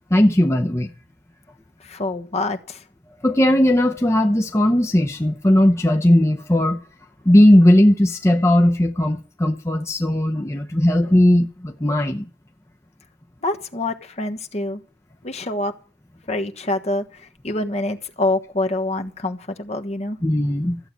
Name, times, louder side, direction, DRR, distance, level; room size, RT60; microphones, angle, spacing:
voice 1, 0.1-0.9 3.2-6.8 7.2-12.3 20.2-20.8, left 1 dB, 15° left, 0.7 m, -17 dB
voice 2, 1.8-2.8 13.4-14.8 15.2-15.7 16.3-20.2, left 2 dB, 40° left, 1.3 m, -26 dB
14.5 x 7.8 x 9.4 m
head